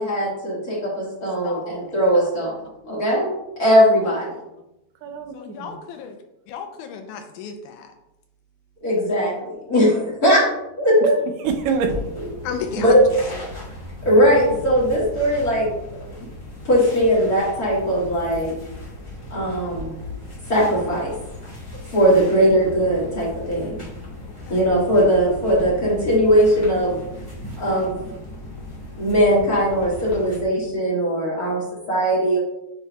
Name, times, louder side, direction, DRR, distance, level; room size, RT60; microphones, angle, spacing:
voice 1, 0.0-3.3 3.6-4.4 8.8-10.4 10.8-11.2 12.7-13.0 14.0-16.0 16.6-18.6 19.3-20.0 20.5-21.1 21.9-23.7 24.5-27.0 27.6-28.1 29.0-31.6 31.9-32.4, equal, 40° left, -6 dB, 1.6 m, -19 dB
voice 2, 1.4-1.8 4.0-4.1 5.3-6.2 6.5-7.9 12.4-13.0 13.5-13.7 24.5-24.6, left 6 dB, 80° left, 5 dB, 1.9 m, -34 dB
voice 3, 5.0-5.8 11.0-11.1 11.4-11.9 26.0-26.3 26.7-27.6 30.6-30.7, right 5 dB, 85° right, 5 dB, 2.2 m, -29 dB
sound 1, 11.4-30.4, left 2 dB, 10° left, 1.8 m, -37 dB
9.4 x 4.6 x 2.2 m, 0.89 s
omnidirectional pair, 3.7 m